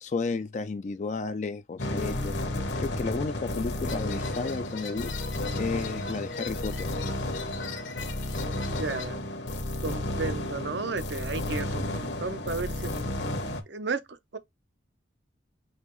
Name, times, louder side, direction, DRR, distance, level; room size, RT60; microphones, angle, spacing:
voice 1, 0.0-2.4 2.8-5.2 5.5-7.0, left 4 dB, 40° left, 0.3 m, -32 dB
sound 1, 1.8-13.6, left 1 dB, 65° left, 1.1 m, -32 dB
sound 2, 3.9-9.1, left 5 dB, 80° left, 1.4 m, -41 dB
voice 2, 8.7-9.2 9.8-12.9 13.7-14.4, right 4 dB, 65° right, 0.6 m, -33 dB
5.5 x 2.9 x 3.0 m
head